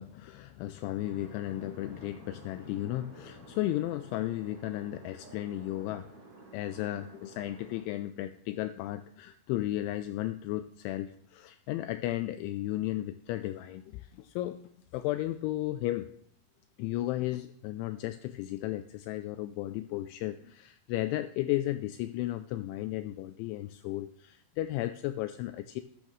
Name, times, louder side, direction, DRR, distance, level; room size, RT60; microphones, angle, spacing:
voice 1, 0.0-6.1 6.5-14.6 14.9-16.1 16.8-25.8, left 15 dB, 85° left, 10 dB, 2.7 m, -34 dB
sound 1, 1.0-7.8, right 2 dB, 35° right, 4.8 m, -53 dB
13.5 x 10.5 x 3.1 m, 0.65 s
omnidirectional pair, 5.7 m